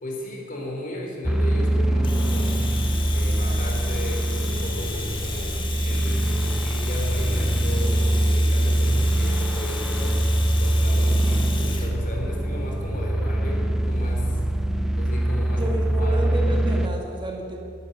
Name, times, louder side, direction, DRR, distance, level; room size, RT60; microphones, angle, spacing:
voice 1, 0.0-2.7 3.1-5.6 5.8-10.2 10.6-14.4 15.0-16.3, equal, 45° left, 0 dB, 3.5 m, -35 dB
sound 1, 1.2-16.9, right 1 dB, 5° right, 0.7 m, -23 dB
Domestic sounds home sounds, 2.0-11.9, left 4 dB, 25° left, 1.6 m, -35 dB
voice 2, 15.5-17.6, right 1 dB, 25° right, 1 dB, 2.0 m, -31 dB
12.0 x 11.5 x 9.2 m, 2.3 s
head